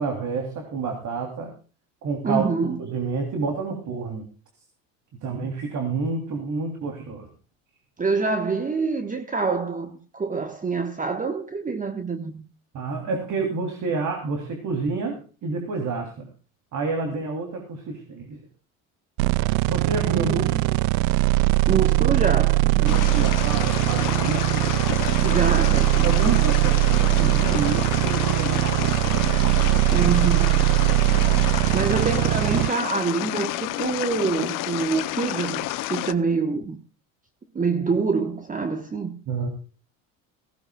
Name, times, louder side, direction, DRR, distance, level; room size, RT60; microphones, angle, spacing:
voice 1, 0.0-1.5 2.0-2.4 2.8-4.2 5.2-7.3 12.7-16.2 16.7-18.4 19.4-20.8 22.8-24.7 26.0-29.0 39.3-39.5, right 4 dB, 50° right, 3.3 m, -29 dB
voice 2, 2.2-2.8 8.0-12.4 20.0-20.7 21.7-22.9 25.2-26.1 29.9-30.7 31.7-36.8 37.5-39.1, right 4 dB, 20° right, 1.4 m, -26 dB
sound 1, 19.2-32.7, right 19 dB, 75° right, 0.5 m, -21 dB
sound 2, 22.9-36.1, left 16 dB, 55° left, 0.9 m, -30 dB
17.0 x 15.5 x 2.4 m
hypercardioid pair, 85°, 39 cm